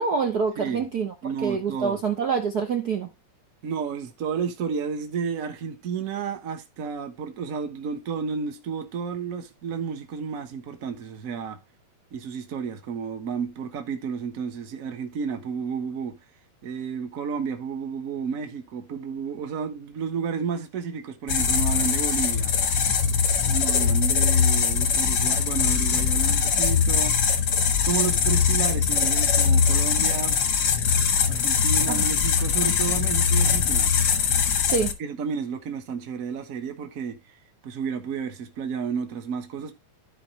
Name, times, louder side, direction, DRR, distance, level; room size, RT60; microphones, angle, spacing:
voice 1, 0.0-1.1 1.4-3.1 31.9-32.0 34.6-34.9, right 5 dB, 85° right, 0.8 m, -26 dB
voice 2, 1.2-2.0 3.6-11.6 12.1-16.2 16.6-22.5 23.4-27.2 27.8-30.4 31.3-33.9 35.0-37.2 37.6-39.8, right 6 dB, 45° right, 1.1 m, -31 dB
sound 1, 21.3-34.9, left 6 dB, 55° left, 1.1 m, -22 dB
13.5 x 4.8 x 2.9 m
omnidirectional pair, 3.3 m